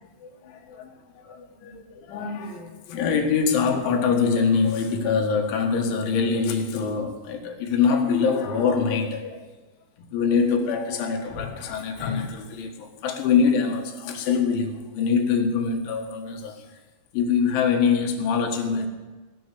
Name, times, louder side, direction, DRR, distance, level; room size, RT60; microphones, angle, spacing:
voice 1, 0.0-9.5 10.0-16.6 17.1-18.9, left 5 dB, 75° left, 4.0 m, -24 dB
18.5 x 6.2 x 9.8 m
omnidirectional pair, 5.6 m